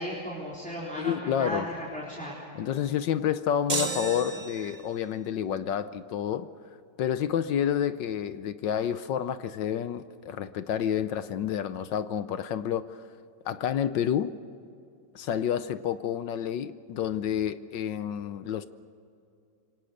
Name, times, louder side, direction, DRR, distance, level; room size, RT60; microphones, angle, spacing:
voice 1, 0.0-2.4, equal, 5° left, 4.1 m, -35 dB
voice 2, 1.0-1.7 2.5-6.5 7.0-13.0 13.4-14.4 15.1-18.7, left 9 dB, 70° left, 1.3 m, -29 dB
sound 1, 3.7-5.0, right 3 dB, 25° right, 1.4 m, -32 dB
27.0 x 25.0 x 6.6 m
omnidirectional pair, 2.2 m